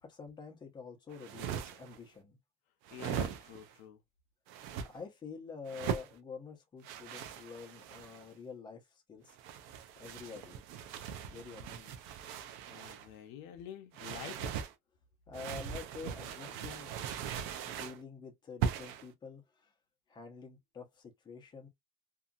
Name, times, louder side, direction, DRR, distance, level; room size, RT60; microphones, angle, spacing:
voice 1, 0.0-2.4 4.8-9.4 10.0-10.6 11.3-11.7 12.4-12.6 15.3-17.0 17.6-19.7 20.1-21.7, left 5 dB, 20° left, 0.9 m, -48 dB
sound 1, 1.1-2.0 2.8-3.7 4.5-4.9 5.7-6.1 6.8-8.3 9.3-13.1 13.9-14.7 15.3-18.0 18.6-19.1, right 8 dB, 70° right, 0.6 m, -40 dB
voice 2, 2.9-4.0 11.5-11.9 12.7-14.5 16.5-16.7, left 9 dB, 75° left, 0.7 m, -49 dB
2.8 x 2.5 x 2.4 m
cardioid pair, 150°, 21 cm